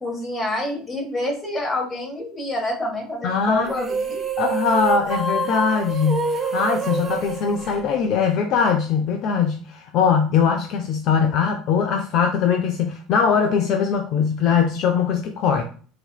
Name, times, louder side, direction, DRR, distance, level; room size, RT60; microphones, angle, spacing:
voice 1, 0.0-4.2, left 1 dB, 25° left, 0 dB, 1.5 m, -27 dB
voice 2, 3.2-3.8 4.4-15.6, left 6 dB, 60° left, 5 dB, 0.4 m, -21 dB
sound 1, 3.7-8.4, right 4 dB, 30° right, 0.4 m, -27 dB
4.1 x 2.5 x 2.3 m, 0.41 s
hypercardioid pair, 80°, 0 cm